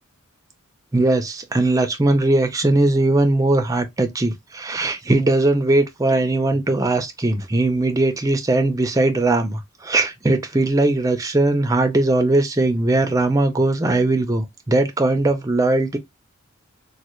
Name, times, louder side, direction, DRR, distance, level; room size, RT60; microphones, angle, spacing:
voice 1, 0.9-16.0, right 2 dB, 15° right, 0.4 m, -19 dB
3.2 x 2.2 x 3.0 m
head